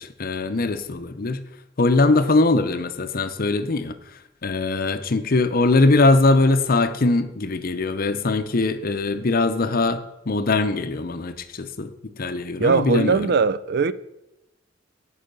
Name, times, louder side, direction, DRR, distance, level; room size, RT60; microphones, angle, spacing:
voice 1, 0.0-1.4 1.8-4.0 4.4-13.3, left 3 dB, 50° left, 0.7 m, -21 dB
voice 2, 12.6-13.9, right 5 dB, 55° right, 0.4 m, -20 dB
10.0 x 4.9 x 6.7 m
head